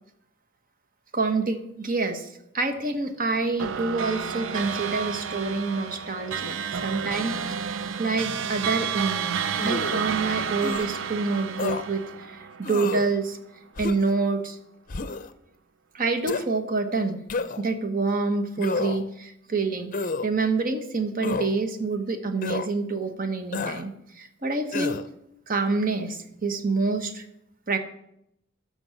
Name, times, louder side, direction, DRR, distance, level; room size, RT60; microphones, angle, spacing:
voice 1, 1.1-7.3 7.7-13.4 13.8-14.6 15.9-17.2 17.6-19.9 20.2-25.0 25.5-27.2 27.7-27.8, right 3 dB, 45° right, 7 dB, 1.1 m, -27 dB
sound 1, 3.6-13.2, right 7 dB, 75° right, 0.6 m, -31 dB
sound 2, 9.5-10.0 10.6-10.9 11.6-11.8 12.6-13.1 13.8-14.1 14.9-15.3 16.3-16.4 17.3-17.7 18.6-19.1 19.9-20.3 21.2-21.5 22.4-22.7 23.5-23.8 24.7-25.1, left 3 dB, 45° left, 0.6 m, -30 dB
13.0 x 6.0 x 5.9 m, 0.78 s
head